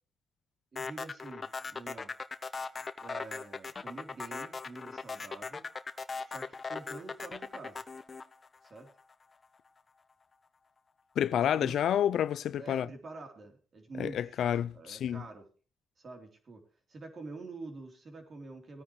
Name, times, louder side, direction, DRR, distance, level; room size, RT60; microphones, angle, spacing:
voice 1, 0.7-2.1 3.0-5.7 6.3-7.8 8.7-8.9 11.5-11.9 12.6-15.5 16.0-16.6 16.9-18.8, right 3 dB, 40° right, 3.7 m, -47 dB
sound 1, 0.8-9.1, left 4 dB, 35° left, 1.0 m, -39 dB
voice 2, 11.2-12.9 14.0-15.2, left 10 dB, 70° left, 0.5 m, -29 dB
19.0 x 9.7 x 3.2 m
cardioid pair, 90°, 0 cm